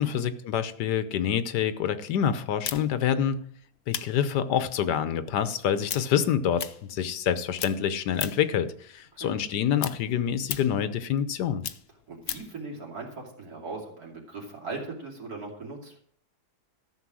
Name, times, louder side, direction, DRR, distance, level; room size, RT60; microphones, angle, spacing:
voice 1, 0.0-3.5 3.9-6.6 6.9-11.6, left 9 dB, 90° left, 12 dB, 1.5 m, -27 dB
sound 1, 2.6-7.3 7.6-8.6 9.0-12.6, left 10 dB, 70° left, 1.1 m, -37 dB
voice 2, 12.1-16.0, right 3 dB, 65° right, -1 dB, 3.2 m, -39 dB
13.5 x 6.7 x 6.2 m, 0.62 s
omnidirectional pair, 1.8 m